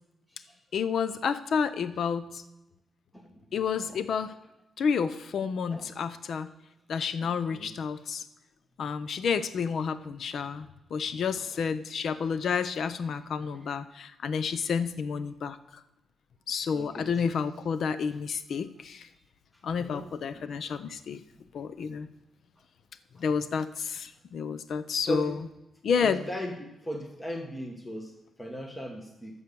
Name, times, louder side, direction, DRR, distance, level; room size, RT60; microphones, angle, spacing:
voice 1, 0.7-2.4 3.5-4.3 4.8-6.5 6.9-8.2 8.8-15.8 16.5-19.1 19.6-21.2 21.5-22.1 23.2-25.4 25.8-26.2, left 6 dB, 65° left, 13 dB, 0.6 m, -30 dB
voice 2, 7.2-7.7 11.4-11.6 16.7-17.1 19.8-20.1 20.3-20.6 21.3-21.4 23.2-23.3 25.1-25.3 26.0-29.4, equal, 10° left, 2 dB, 1.5 m, -38 dB
12.5 x 7.2 x 6.9 m, 0.93 s
cardioid pair, 125°, 0 cm